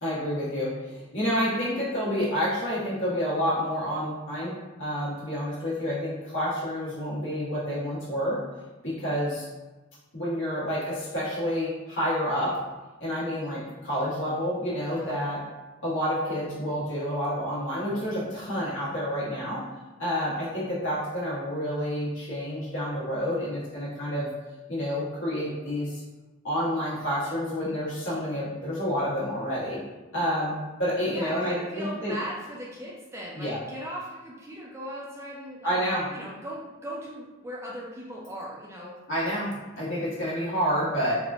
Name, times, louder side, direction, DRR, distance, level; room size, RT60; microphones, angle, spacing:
voice 1, 0.0-4.5 4.8-8.4 8.8-9.4 10.1-12.5 13.0-15.4 15.8-19.6 20.0-24.3 24.7-26.0 26.4-29.8 30.1-32.1 33.4-33.6 35.6-36.1 39.1-41.2, equal, 65° left, -9 dB, 1.3 m, -29 dB
voice 2, 31.1-35.8 36.1-39.0, equal, 15° right, -4 dB, 0.3 m, -38 dB
3.5 x 2.5 x 2.3 m, 1.2 s
head